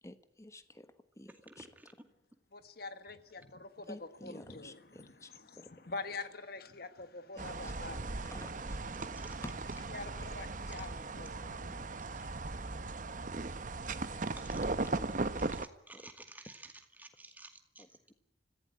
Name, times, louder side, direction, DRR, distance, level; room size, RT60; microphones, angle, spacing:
voice 1, 0.0-1.7 3.9-5.7 7.3-9.5 10.6-12.9 14.1-16.1 17.8-18.1, left 1 dB, 15° left, 1.2 m, -53 dB
voice 2, 2.5-3.9 4.2-4.8 5.5-8.0 9.9-11.9, left 3 dB, 60° left, 1.5 m, -45 dB
sound 1, 7.4-15.6, right 3 dB, 45° right, 0.9 m, -38 dB
voice 3, 15.9-16.6 17.0-17.8, right 2 dB, 10° right, 2.2 m, -52 dB
25.0 x 15.5 x 9.7 m
head